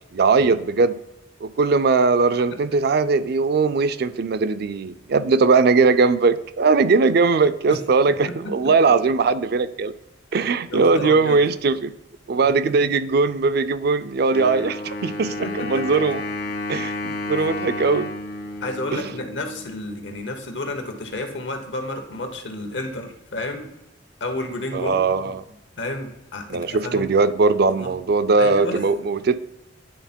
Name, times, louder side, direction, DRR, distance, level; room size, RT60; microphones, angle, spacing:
voice 1, 0.1-1.0 1.4-9.9 10.3-11.9 12.3-16.2 16.7-18.1 18.9-19.0 24.7-25.4 26.5-29.4, right 4 dB, 60° right, 13 dB, 0.4 m, -20 dB
voice 2, 10.3-11.4 12.6-12.7 15.4-15.8 18.6-23.7 24.2-25.1 25.8-27.0 27.7-27.9 28.4-28.8, left 2 dB, 80° left, 5 dB, 1.3 m, -31 dB
Wind instrument woodwind instrument, 14.3-19.9, left 2 dB, 60° left, 1.2 m, -31 dB
10.0 x 3.7 x 4.4 m, 0.91 s
head